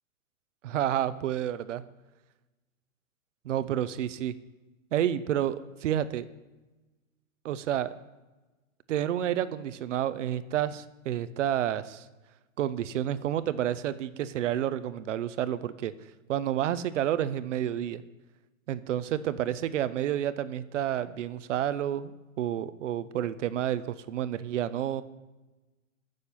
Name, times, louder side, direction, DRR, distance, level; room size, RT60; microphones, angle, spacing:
voice 1, 0.6-1.8 3.4-4.3 4.9-6.3 7.4-7.9 8.9-12.1 12.6-15.9 16.3-18.0 18.7-25.0, right 11 dB, 60° right, 14 dB, 0.8 m, -30 dB
15.0 x 6.8 x 5.7 m, 1.1 s
hypercardioid pair, 165°, 41 cm